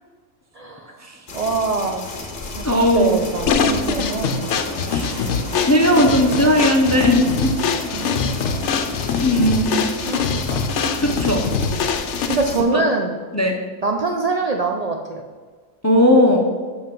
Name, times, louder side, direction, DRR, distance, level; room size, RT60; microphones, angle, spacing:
voice 1, 0.5-1.0 1.3-2.1 2.4-4.5 7.9-8.5 9.5-10.7 12.3-13.1 13.8-15.2, right 3 dB, 85° right, 2 dB, 0.3 m, -25 dB
sound 1, 1.3-12.6, left 3 dB, 40° left, 1.0 m, -34 dB
voice 2, 2.6-3.2 4.9-5.3 5.6-7.5 7.9-8.0 9.2-9.9 11.0-11.4 12.7-12.8 13.3-13.6 15.8-16.5, equal, 25° left, 2 dB, 0.3 m, -17 dB
Traffic noise roadway noise, 3.2-9.2, equal, 55° right, 1.9 m, -37 dB
sound 2, 3.5-12.6, left 6 dB, 65° left, 0.9 m, -23 dB
6.5 x 5.6 x 5.3 m, 1.5 s
omnidirectional pair, 1.4 m